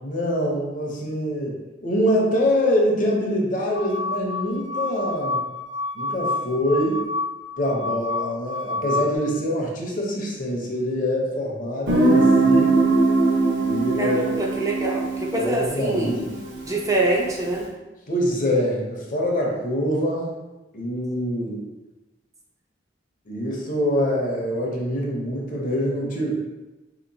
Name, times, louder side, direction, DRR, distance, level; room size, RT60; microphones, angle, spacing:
voice 1, 0.0-1.5 1.8-5.4 5.9-7.0 7.6-12.9 13.6-14.2 15.3-16.4 18.1-20.3 20.7-21.7 23.3-26.5, equal, 45° left, -1 dB, 0.7 m, -25 dB
sound 1, 3.7-9.2, left 3 dB, 70° left, 0.3 m, -29 dB
Guitar, 11.9-17.4, right 3 dB, 65° right, 0.9 m, -21 dB
voice 2, 14.0-16.2 16.7-17.7, right 2 dB, 15° right, -2 dB, 0.4 m, -25 dB
4.0 x 2.9 x 2.7 m, 1.1 s
head